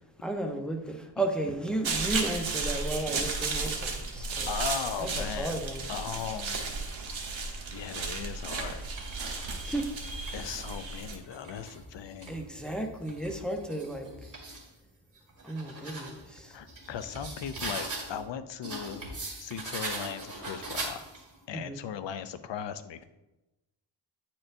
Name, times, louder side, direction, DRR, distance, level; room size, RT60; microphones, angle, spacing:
voice 1, 0.2-4.5 5.0-5.9 9.6-9.9 12.3-14.1 15.4-16.5 21.5-21.8, right 1 dB, ahead, 3 dB, 0.8 m, -34 dB
sound 1, 1.8-11.2, right 4 dB, 75° right, 1.1 m, -34 dB
voice 2, 4.5-5.6 5.9-6.7 7.7-8.8 10.3-12.4 16.5-19.0 19.4-21.1 21.5-23.0, left 8 dB, 65° left, 12 dB, 0.5 m, -38 dB
sound 2, 6.4-7.1 7.8-10.8 11.2-14.7 15.1-18.2 18.6-21.4, right 2 dB, 40° right, 2.0 m, -41 dB
9.2 x 4.3 x 2.6 m, 1.0 s
cardioid pair, 85°, 47 cm